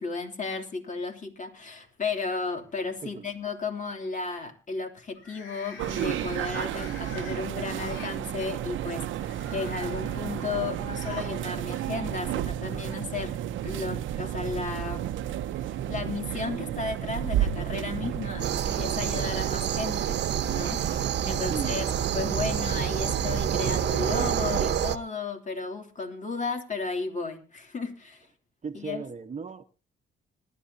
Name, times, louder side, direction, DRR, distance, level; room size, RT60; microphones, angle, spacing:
voice 1, 0.0-13.4 13.6-15.1 15.5-21.8 22.1-28.3 28.7-29.0, left 4 dB, 40° left, 4 dB, 3.0 m, -34 dB
sound 1, 1.6-2.2 2.6-3.0 5.1-8.2 9.0-11.4 11.7-11.8 12.9-13.0, left 4 dB, 85° left, 4.3 m, -46 dB
sound 2, 5.8-24.8, right 11 dB, 80° right, 0.8 m, -32 dB
sound 3, 18.4-25.0, right 8 dB, 60° right, 1.1 m, -29 dB
voice 2, 21.5-21.9 28.6-29.6, right 5 dB, 35° right, 8 dB, 1.1 m, -36 dB
26.0 x 11.0 x 2.8 m, 0.33 s
cardioid pair, 90°, 20 cm